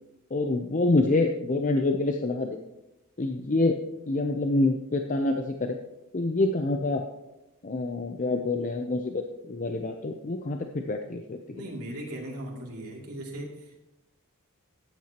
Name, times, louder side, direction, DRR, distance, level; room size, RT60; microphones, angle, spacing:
voice 1, 0.3-2.6 3.2-3.8 4.1-5.8 6.1-7.0 7.6-11.4, left 2 dB, 35° left, 4 dB, 0.6 m, -26 dB
voice 2, 11.5-13.8, right 1 dB, 85° right, -3 dB, 2.6 m, -38 dB
13.0 x 9.2 x 2.9 m, 0.95 s
head